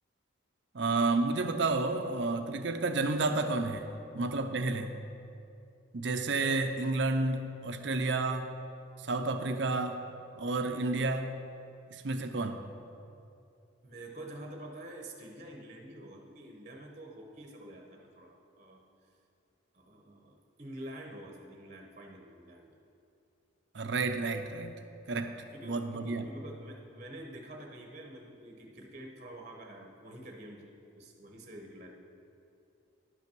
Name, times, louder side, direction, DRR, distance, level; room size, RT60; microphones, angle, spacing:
voice 1, 0.7-3.9 4.1-4.9 5.9-8.5 9.0-10.0 10.4-11.4 11.9-12.6 23.7-24.7 25.1-25.3 25.6-26.3, right 3 dB, 60° right, 7 dB, 0.6 m, -30 dB
voice 2, 13.8-18.8 19.7-22.7 25.2-30.7 30.9-31.9, right 1 dB, 35° right, 1 dB, 1.0 m, -47 dB
11.0 x 5.8 x 6.1 m, 2.6 s
head